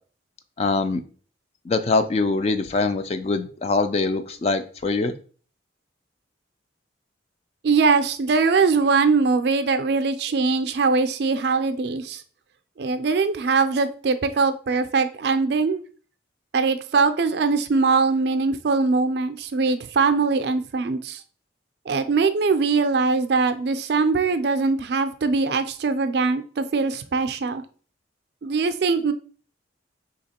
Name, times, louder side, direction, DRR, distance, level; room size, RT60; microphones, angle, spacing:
voice 1, 0.6-1.0 1.7-5.1, left 3 dB, 35° left, 9 dB, 0.3 m, -23 dB
voice 2, 7.6-12.2 12.8-15.8 16.5-21.2 21.9-27.6 28.4-29.1, right 4 dB, 60° right, 10 dB, 0.4 m, -22 dB
3.5 x 2.9 x 4.2 m, 0.41 s
head